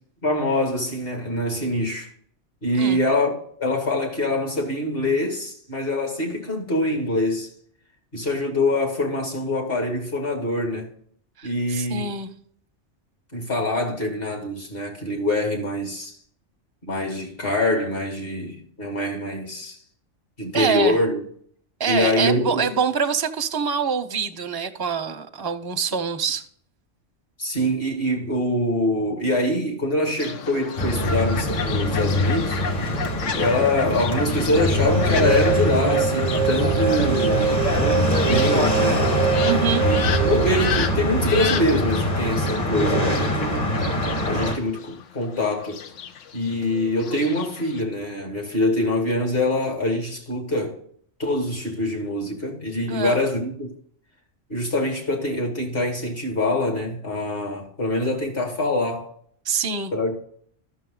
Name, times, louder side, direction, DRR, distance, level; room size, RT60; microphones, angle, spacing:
voice 1, 0.2-2.1 2.6-3.3 3.6-7.5 8.1-10.9 11.4-12.1 13.3-16.1 16.8-19.8 20.4-21.2 21.9-22.6 27.4-32.6 33.4-39.1 39.8-43.7 44.3-45.8 46.3-50.8 51.2-53.7 54.5-59.1 59.9-60.2, left 1 dB, 50° left, 2.5 m, -24 dB
voice 2, 11.4-12.3 20.5-21.0 21.8-26.4 39.4-39.8 52.9-53.2 59.4-59.9, right 6 dB, 25° right, 0.6 m, -25 dB
Fowl, 30.2-47.8, left 6 dB, 85° left, 1.1 m, -33 dB
sound 1, 30.8-44.6, left 1 dB, 35° left, 1.5 m, -23 dB
sound 2, 34.5-41.7, right 8 dB, 85° right, 0.9 m, -25 dB
13.0 x 6.4 x 3.8 m
omnidirectional pair, 1.2 m